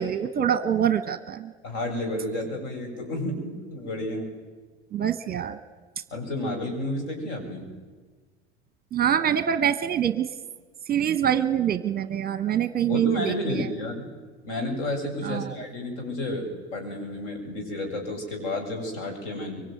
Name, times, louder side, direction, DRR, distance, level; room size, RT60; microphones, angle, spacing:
voice 1, 0.0-1.5 4.9-5.6 8.9-10.3 10.9-13.7 15.2-15.6, right 9 dB, 25° right, 12 dB, 1.2 m, -25 dB
voice 2, 1.6-4.3 6.1-7.7 12.9-14.1 14.4-19.6, left 1 dB, 55° left, 3 dB, 7.9 m, -31 dB
24.5 x 23.5 x 9.4 m, 1.4 s
figure-of-eight pair, 85°, 33 cm